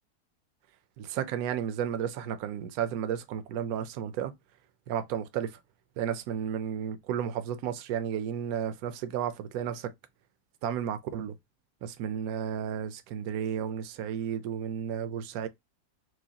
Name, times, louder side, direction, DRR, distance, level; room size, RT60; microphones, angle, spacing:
voice 1, 1.0-4.3 4.9-5.5 6.0-9.9 10.6-11.3 11.8-15.5, right 9 dB, 75° right, 1.0 m, -33 dB
4.7 x 2.1 x 2.7 m
omnidirectional pair, 1.6 m